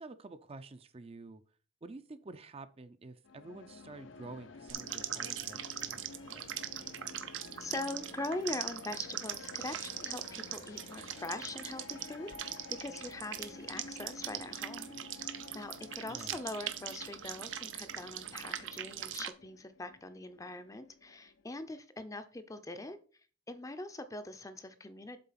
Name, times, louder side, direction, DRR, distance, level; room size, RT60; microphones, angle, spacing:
voice 1, 0.0-1.4 1.8-6.5 16.1-16.4, right 3 dB, 30° right, 11 dB, 0.5 m, -49 dB
sound 1, 3.2-21.4, left 4 dB, 70° left, 0.6 m, -52 dB
sound 2, 4.7-19.3, right 10 dB, 70° right, 0.7 m, -41 dB
voice 2, 7.6-14.9 15.3-23.0 23.5-25.2, left 2 dB, 15° left, 10 dB, 0.6 m, -42 dB
7.6 x 3.9 x 5.7 m, 0.39 s
head